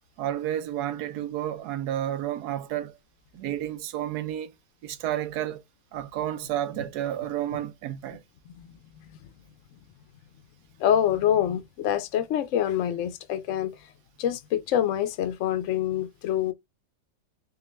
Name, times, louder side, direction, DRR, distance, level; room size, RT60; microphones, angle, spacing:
voice 1, 0.2-3.0 3.3-4.5 4.8-5.6 5.9-8.2, right 11 dB, 75° right, 1.1 m, -31 dB
voice 2, 10.8-13.8 14.2-16.5, left 10 dB, 65° left, 0.8 m, -26 dB
3.6 x 2.4 x 3.1 m
omnidirectional pair, 1.8 m